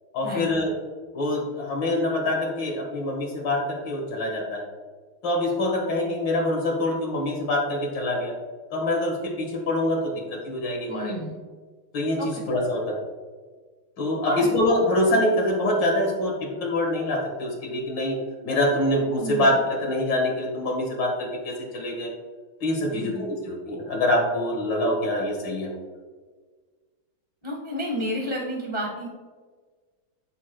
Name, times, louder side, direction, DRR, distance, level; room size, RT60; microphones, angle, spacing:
voice 1, 0.1-0.7 1.1-4.7 5.2-8.4 8.7-11.2 11.9-13.0 14.0-18.2 18.4-22.1 22.6-25.7, left 1 dB, 60° left, 0 dB, 2.3 m, -25 dB
voice 2, 10.9-11.4 12.2-12.4 14.2-14.5 19.2-19.5 22.9-23.2 27.4-29.1, equal, 30° left, -1 dB, 0.4 m, -30 dB
10.5 x 4.7 x 2.2 m, 1.4 s
omnidirectional pair, 2.3 m